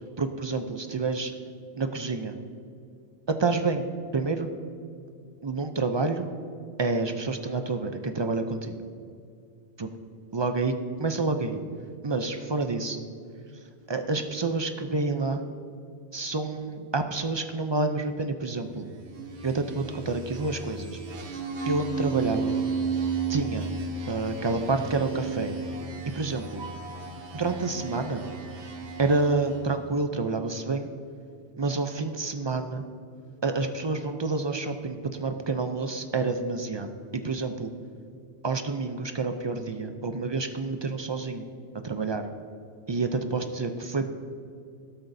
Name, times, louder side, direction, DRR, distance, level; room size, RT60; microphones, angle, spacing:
voice 1, 0.2-1.3 1.8-2.4 3.3-3.9 4.1-4.5 5.4-6.3 6.8-8.8 9.8-9.9 10.3-11.6 12.0-13.0 13.9-15.4 16.1-18.9 19.4-21.0 21.6-22.6 23.3-23.7 24.1-25.5 26.1-26.6 27.3-28.2 29.0-30.9 31.6-32.8 33.4-37.7 38.4-41.4 41.8-42.3 42.9-44.1, right 3 dB, 45° right, 7 dB, 0.3 m, -28 dB
sound 1, 18.9-29.8, right 4 dB, 80° right, 1.4 m, -34 dB
13.5 x 12.0 x 2.6 m, 2.4 s
omnidirectional pair, 1.1 m